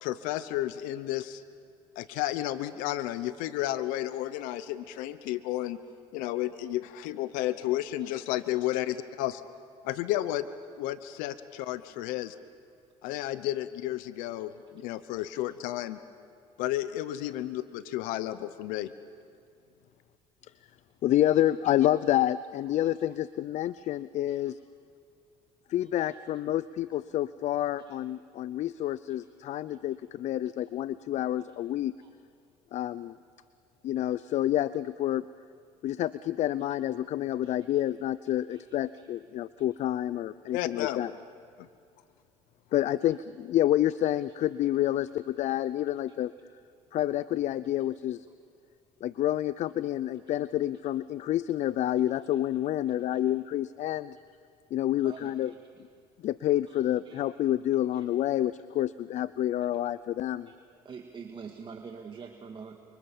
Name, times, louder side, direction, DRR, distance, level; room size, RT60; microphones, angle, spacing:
voice 1, 0.0-1.4 2.0-5.8 6.1-9.4 9.8-10.5 10.8-12.3 13.0-16.0 16.6-18.9 40.5-41.0 41.6-41.7, left 14 dB, 80° left, 13 dB, 0.9 m, -32 dB
voice 2, 21.0-24.6 25.7-31.9 32.7-33.2 33.8-35.3 35.8-41.1 42.7-46.3 46.9-48.3 49.0-54.2 54.7-55.5 56.2-60.5, left 13 dB, 60° left, 17 dB, 0.5 m, -28 dB
voice 3, 25.8-26.2 27.9-28.0 29.7-29.8 32.0-32.1 37.4-37.8 38.5-38.6 38.9-39.1 50.2-50.3 52.3-52.4 53.1-53.2 55.0-55.8 56.7-56.8 57.1-57.2 57.9-58.0 60.5-60.6 60.8-62.8, right 5 dB, 35° right, 3 dB, 2.0 m, -46 dB
29.0 x 24.5 x 7.2 m, 2.4 s
supercardioid pair, 85°, 14 cm